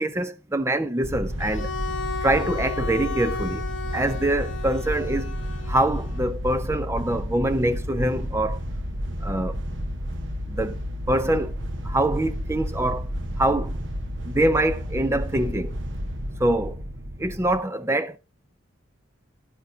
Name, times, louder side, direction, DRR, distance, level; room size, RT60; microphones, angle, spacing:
voice 1, 0.0-1.7 2.2-3.6 3.9-5.4 5.7-8.6 9.2-9.6 10.5-10.8 11.1-11.6 11.8-13.1 13.4-13.7 14.3-15.7 16.4-16.8 17.2-18.2, right 1 dB, 15° right, 0.6 m, -24 dB
sound 1, 1.0-17.6, equal, 65° right, 1.1 m, -31 dB
Bowed string instrument, 1.4-6.4, left 4 dB, 70° left, 1.5 m, -34 dB
11.0 x 9.5 x 2.8 m
head